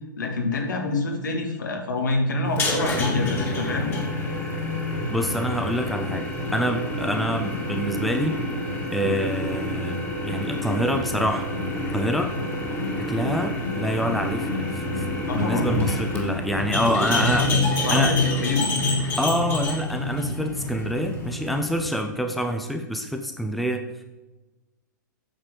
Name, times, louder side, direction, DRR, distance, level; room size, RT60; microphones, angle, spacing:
voice 1, 0.2-3.9 15.3-16.0 17.4-18.7, left 3 dB, 70° left, 2 dB, 2.1 m, -27 dB
sound 1, 2.5-21.9, left 2 dB, 20° left, 2.2 m, -27 dB
voice 2, 5.1-6.3 6.5-8.4 8.9-11.5 11.9-12.3 13.1-14.8 15.3-17.5 17.9-18.1 19.2-23.8, equal, ahead, 5 dB, 0.7 m, -26 dB
8.9 x 7.0 x 5.0 m, 1.1 s
figure-of-eight pair, 100°, 11 cm